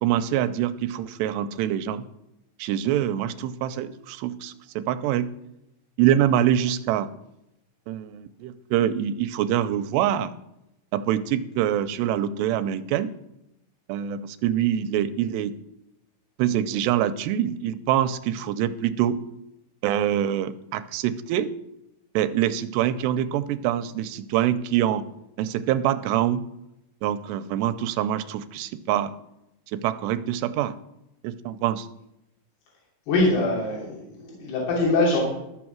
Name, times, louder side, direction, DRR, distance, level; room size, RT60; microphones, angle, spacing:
voice 1, 0.0-2.0 2.6-5.3 6.0-7.1 7.9-10.3 10.9-13.1 13.9-15.5 16.4-19.2 19.8-21.5 22.1-25.0 25.4-26.4 27.0-29.1 29.7-30.7 31.2-31.9, right 11 dB, 90° right, 12 dB, 2.7 m, -25 dB
voice 2, 33.1-35.2, left 2 dB, 70° left, -4 dB, 5.0 m, -23 dB
13.0 x 7.1 x 6.1 m, 0.86 s
omnidirectional pair, 4.9 m